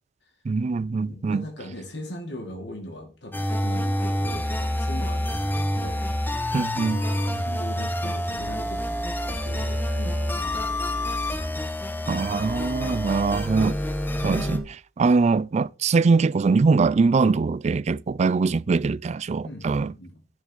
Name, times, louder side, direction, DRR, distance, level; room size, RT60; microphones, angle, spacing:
voice 1, 0.5-1.4 6.5-7.0 12.1-13.8 14.2-19.9, right 4 dB, 40° right, 0.3 m, -22 dB
voice 2, 1.1-6.0 6.8-11.1 19.4-20.1, left 1 dB, 65° left, 2.0 m, -39 dB
sound 1, 3.3-14.6, left 1 dB, 10° left, 1.5 m, -27 dB
11.0 x 4.6 x 6.2 m
head